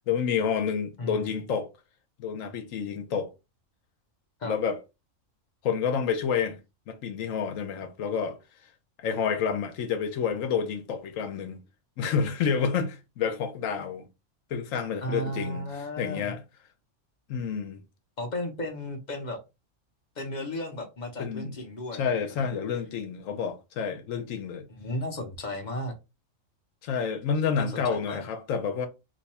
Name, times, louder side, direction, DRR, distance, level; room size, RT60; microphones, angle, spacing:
voice 1, 0.1-1.7 2.2-3.3 4.4-4.8 5.6-6.6 6.9-8.4 9.0-11.6 12.0-14.1 14.5-15.7 16.0-16.4 17.3-17.8 21.2-21.5 21.9-24.7 26.8-28.9, left 6 dB, 75° left, 1.1 m, -29 dB
voice 2, 1.0-1.4 4.4-4.6 15.0-16.4 18.2-19.4 20.2-22.5 24.7-26.0 27.6-28.2, left 1 dB, 40° left, 0.8 m, -35 dB
3.0 x 2.3 x 4.1 m
omnidirectional pair, 1.4 m